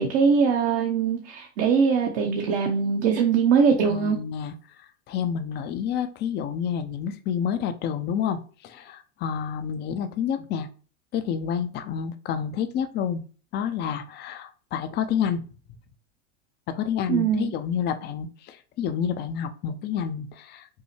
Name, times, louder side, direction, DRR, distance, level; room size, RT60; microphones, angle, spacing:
voice 1, 0.0-4.2 17.1-17.5, right 6 dB, 65° right, 0.8 m, -22 dB
voice 2, 3.8-4.5 5.1-10.7 11.1-13.2 13.5-15.5 16.7-20.7, left 8 dB, 30° left, 0.4 m, -29 dB
5.4 x 2.1 x 3.1 m
hypercardioid pair, 105°, 38 cm